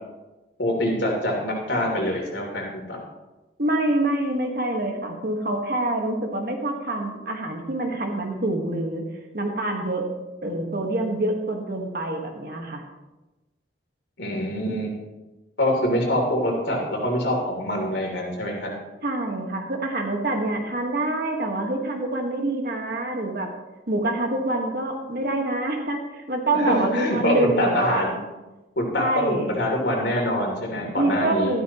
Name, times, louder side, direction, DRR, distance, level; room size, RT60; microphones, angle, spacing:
voice 1, 0.6-3.0 14.2-14.9 15.6-18.7 26.5-28.1 28.8-31.5, left 1 dB, 75° left, -1 dB, 3.2 m, -25 dB
voice 2, 3.6-9.0 9.3-10.1 10.4-12.8 19.0-23.5 23.9-28.0 29.0-29.5 31.0-31.6, right 1 dB, 55° right, 3 dB, 1.6 m, -26 dB
13.0 x 12.5 x 3.1 m, 1.1 s
head